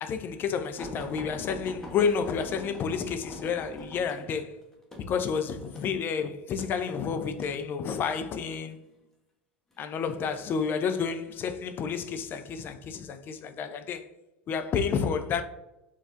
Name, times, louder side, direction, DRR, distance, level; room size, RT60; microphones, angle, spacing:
voice 1, 0.0-4.6 5.0-8.8 9.8-14.1 14.5-15.4, left 6 dB, 35° left, 0.4 m, -30 dB
sound 1, 0.8-7.6 8.3-8.8 9.7-10.4 11.1-11.3 11.7-11.8, left 1 dB, 5° left, 0.8 m, -44 dB
4.0 x 2.4 x 2.6 m
figure-of-eight pair, 75°, 6 cm